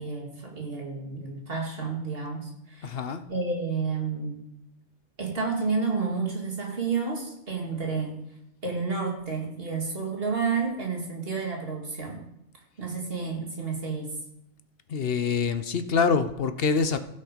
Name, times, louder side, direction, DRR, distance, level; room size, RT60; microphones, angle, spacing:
voice 1, 0.0-3.0 3.3-4.4 5.2-8.2 8.6-12.2 12.8-14.2, right 4 dB, 45° right, 0 dB, 2.3 m, -30 dB
voice 2, 2.8-3.2 14.9-17.0, left 5 dB, 55° left, 10 dB, 0.8 m, -25 dB
15.5 x 5.5 x 5.1 m, 0.82 s
omnidirectional pair, 1.3 m